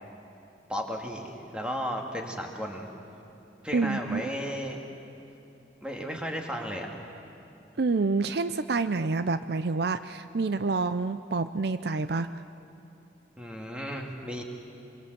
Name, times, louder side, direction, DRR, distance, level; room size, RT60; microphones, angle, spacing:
voice 1, 0.7-2.9 3.6-4.8 5.8-6.9 13.4-14.4, equal, 5° right, 1 dB, 2.2 m, -34 dB
voice 2, 3.7-4.3 7.8-12.3, right 3 dB, 65° right, 12 dB, 0.5 m, -28 dB
25.5 x 23.0 x 8.0 m, 2.8 s
head